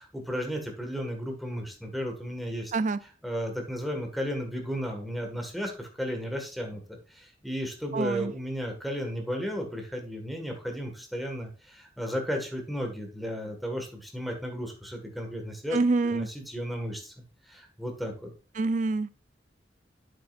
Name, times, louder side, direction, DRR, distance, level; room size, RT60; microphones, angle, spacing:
voice 1, 0.0-2.7 3.2-6.8 7.1-15.8 16.0-17.1 17.5-18.3, equal, ahead, 1.7 m, -34 dB
voice 2, 7.9-8.3 15.7-16.3 18.5-19.1, right 3 dB, 45° right, 0.4 m, -26 dB
8.6 x 7.7 x 2.5 m
head